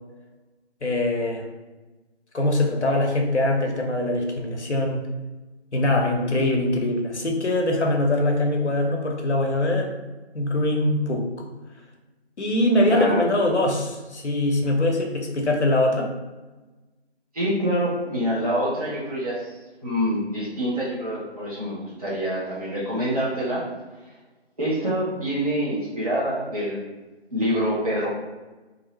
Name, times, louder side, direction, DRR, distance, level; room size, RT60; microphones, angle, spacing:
voice 1, 0.8-1.5 2.3-5.0 5.7-9.9 10.3-11.3 12.4-16.1, left 1 dB, 80° left, 0 dB, 0.7 m, -22 dB
voice 2, 12.9-13.3 17.3-23.6 24.6-26.8 27.3-28.2, equal, 35° right, -8 dB, 0.7 m, -26 dB
2.6 x 2.1 x 4.0 m, 1.2 s
figure-of-eight pair, 160°, 34 cm